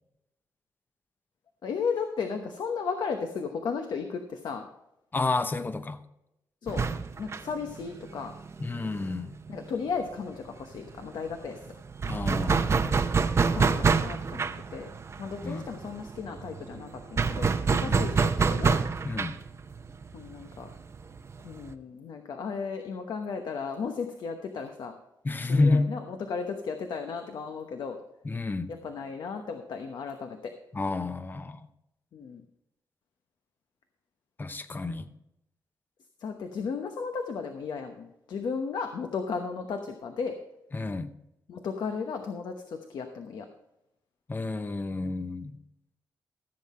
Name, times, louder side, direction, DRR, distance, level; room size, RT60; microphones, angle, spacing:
voice 1, 1.6-4.7 6.6-6.9 7.2-8.3 9.5-11.7 13.4-14.9 15.2-18.8 20.1-20.7 21.4-25.0 25.5-28.0 28.7-30.5 32.1-32.4 36.2-40.4 41.5-43.5, left 5 dB, 70° left, 5 dB, 1.0 m, -35 dB
voice 2, 5.1-6.0 8.6-9.3 12.1-13.0 15.4-15.6 17.8-18.0 19.0-19.4 25.2-25.9 28.2-28.7 30.7-31.7 34.4-35.1 40.7-41.1 44.3-45.6, left 3 dB, 25° left, 11 dB, 0.8 m, -29 dB
sound 1, 6.7-10.1 10.3-10.5 10.7-21.7, right 5 dB, 40° right, 0.7 m, -28 dB
14.5 x 7.6 x 4.3 m, 0.85 s
cardioid pair, 100°, 8 cm